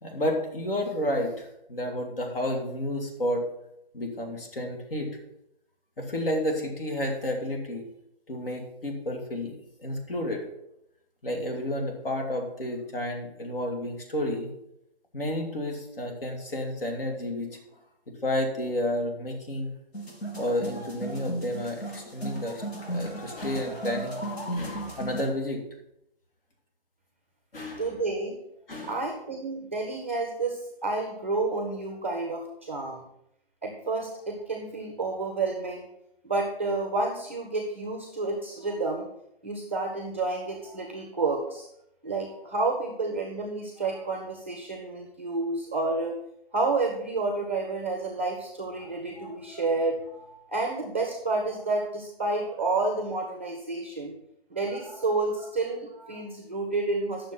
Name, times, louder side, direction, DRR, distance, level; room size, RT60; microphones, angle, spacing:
voice 1, 0.0-3.4 3.9-5.1 6.0-7.9 8.3-9.5 9.8-10.5 11.2-14.5 15.1-17.6 18.1-19.7 20.4-24.2 24.5-25.6 27.5-27.9 28.7-29.0, left 1 dB, 65° left, 3 dB, 2.6 m, -31 dB
sound 1, 19.9-25.2, right 1 dB, 80° left, 3.3 m, -35 dB
voice 2, 27.8-28.3 28.8-33.0 33.6-35.9 36.2-39.1 39.4-41.7 42.0-46.2 46.5-54.1 54.5-57.3, right 3 dB, 10° right, 2 dB, 0.6 m, -30 dB
9.6 x 6.6 x 5.8 m, 0.80 s
hypercardioid pair, 175°, 31 cm